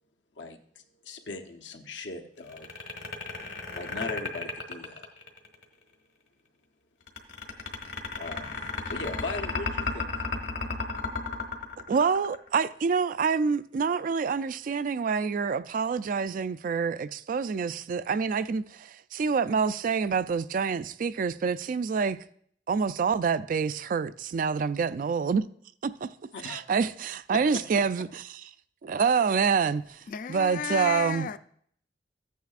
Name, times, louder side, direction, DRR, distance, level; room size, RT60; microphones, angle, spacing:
voice 1, 0.4-2.7 3.7-5.1 8.1-10.1 26.3-26.6 27.3-27.6, left 3 dB, 90° left, 0.9 m, -39 dB
sound 1, 2.5-5.6 7.1-12.6, left 3 dB, 75° left, 1.4 m, -33 dB
voice 2, 11.9-22.2 22.7-25.4 25.8-26.1 26.4-28.2 28.8-30.0 30.3-31.3, right 5 dB, 50° right, 0.3 m, -27 dB
voice 3, 30.1-31.4, left 8 dB, 50° left, 0.4 m, -33 dB
14.5 x 9.3 x 2.4 m
head